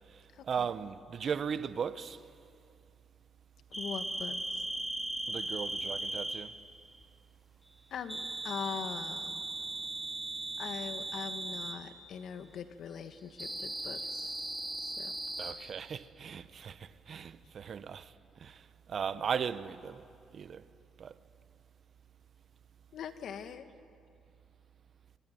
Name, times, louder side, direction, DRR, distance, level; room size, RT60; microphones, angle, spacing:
voice 1, 0.0-2.2 5.3-6.5 15.4-20.0 20.3-20.6 21.0-21.2, right 7 dB, 55° right, 0.9 m, -37 dB
voice 2, 3.7-4.4 7.9-9.4 10.6-14.3 14.8-15.1 22.9-23.7, left 7 dB, 70° left, 1.6 m, -42 dB
sound 1, 3.7-6.5 8.1-11.8 13.4-15.5, right 1 dB, ahead, 3.4 m, -38 dB
25.0 x 22.0 x 9.4 m
cardioid pair, 90°, 0 cm